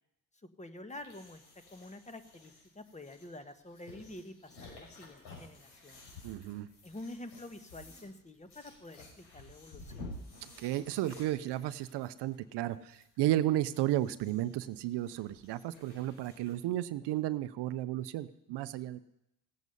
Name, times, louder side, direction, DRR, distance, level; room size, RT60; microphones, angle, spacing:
voice 1, 0.6-1.4 1.7-4.3 4.6-6.0 6.8-10.1, left 1 dB, 15° left, 8 dB, 1.4 m, -48 dB
sound 1, 0.9-16.6, left 2 dB, 60° left, 6.1 m, -53 dB
voice 2, 6.2-6.7 10.6-19.0, right 14 dB, 65° right, 14 dB, 0.7 m, -33 dB
17.0 x 8.3 x 5.4 m, 0.82 s
supercardioid pair, 75°, 44 cm